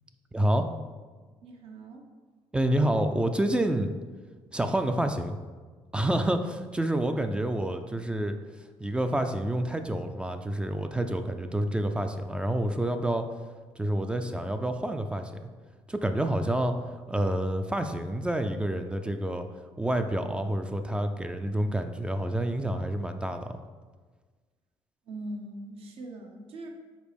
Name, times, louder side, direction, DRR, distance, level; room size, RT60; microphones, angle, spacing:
voice 1, 0.3-0.7 2.5-3.9 4.5-5.4 5.9-8.3 8.8-13.2 13.8-15.3 15.9-16.8 17.1-19.5 19.8-23.6, right 1 dB, 10° right, 7 dB, 0.4 m, -28 dB
voice 2, 1.4-2.1 25.1-26.7, right 1 dB, 70° right, 2 dB, 1.0 m, -41 dB
5.2 x 4.0 x 5.1 m, 1.4 s
cardioid pair, 105°, 10 cm